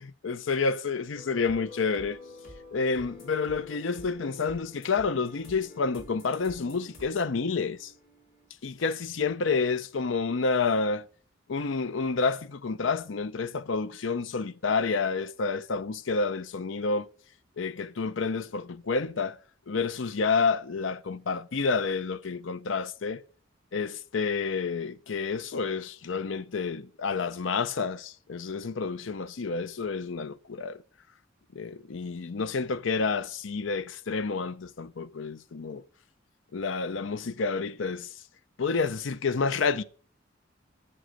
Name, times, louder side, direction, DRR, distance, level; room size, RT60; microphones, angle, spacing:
voice 1, 0.0-2.2 2.7-7.9 8.6-11.1 11.5-17.1 17.6-19.4 19.7-23.2 23.7-30.8 31.5-35.8 36.5-38.1 38.6-39.8, left 4 dB, 70° left, 0.6 m, -29 dB
sound 1, 1.1-8.5, left 2 dB, 50° left, 4.9 m, -48 dB
7.7 x 7.7 x 7.7 m
head